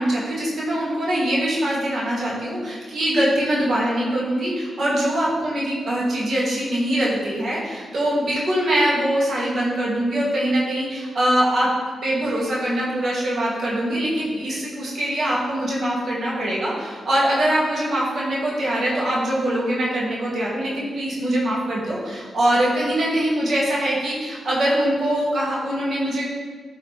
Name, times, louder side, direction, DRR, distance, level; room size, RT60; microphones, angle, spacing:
voice 1, 0.0-11.7 12.0-26.2, right 1 dB, 60° right, -6 dB, 2.2 m, -23 dB
11.5 x 4.0 x 3.5 m, 1.5 s
cardioid pair, 55°, 0 cm